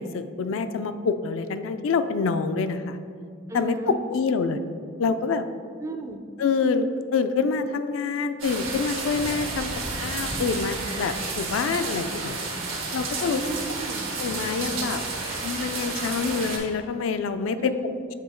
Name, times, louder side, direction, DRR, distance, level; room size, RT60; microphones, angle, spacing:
voice 1, 0.0-3.0 3.5-4.6 5.0-5.5 6.4-9.7 10.0-12.4 12.9-13.4 14.2-15.0 15.4-17.7, left 5 dB, 75° left, 10 dB, 0.3 m, -26 dB
voice 2, 3.5-4.0 5.8-6.2 13.3-14.0 17.6-18.1, right 3 dB, 15° right, 5 dB, 0.4 m, -34 dB
sound 1, 8.4-16.6, right 3 dB, 85° right, 1.3 m, -31 dB
7.6 x 3.0 x 4.3 m, 2.3 s
head